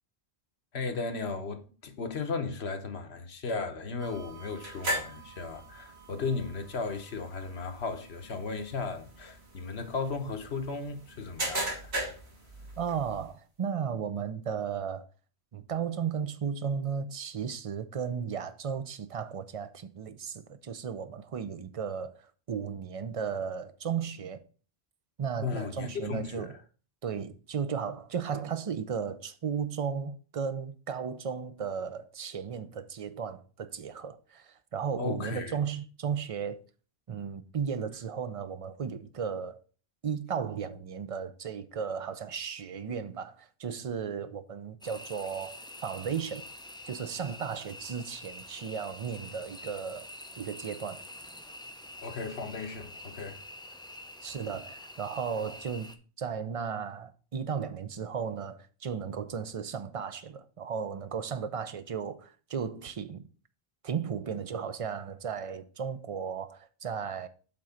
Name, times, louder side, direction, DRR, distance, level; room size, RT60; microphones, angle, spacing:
voice 1, 0.7-11.9 25.4-26.6 35.0-35.6 52.0-53.4, left 4 dB, 85° left, 1.3 m, -35 dB
sound 1, 4.0-13.3, right 1 dB, 90° right, 2.2 m, -39 dB
voice 2, 12.8-15.1 15.5-24.4 25.2-26.5 27.0-36.6 37.1-39.6 40.0-46.5 46.9-50.1 50.4-51.0 54.2-63.3 63.8-67.3, right 7 dB, 40° right, 0.6 m, -35 dB
sound 2, 44.8-56.0, left 1 dB, 5° left, 0.3 m, -46 dB
7.7 x 3.8 x 5.7 m
omnidirectional pair, 1.1 m